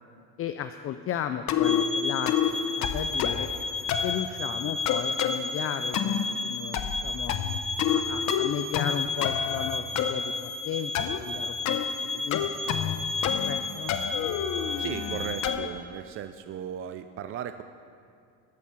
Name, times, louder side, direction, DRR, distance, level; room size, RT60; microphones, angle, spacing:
voice 1, 0.4-3.5 4.0-7.4 7.9-12.7 13.3-14.0, left 10 dB, 40° left, 9 dB, 0.5 m, -35 dB
sound 1, 1.5-1.8 2.3-2.5 2.8-3.5 3.9-4.2 4.9-5.4 5.9-6.3 6.7-7.0 7.3-8.0 8.3-8.9 9.2-10.1 10.9-11.2 11.6-11.8 12.3-13.0 13.2-13.6 13.9-15.7, left 10 dB, 55° left, 0.9 m, -28 dB
sound 2, 1.6-15.5, left 3 dB, 15° right, 1.1 m, -32 dB
voice 2, 14.8-17.6, right 10 dB, 40° right, 10 dB, 0.4 m, -36 dB
14.0 x 8.4 x 5.8 m, 2.4 s
cardioid pair, 115°, 35 cm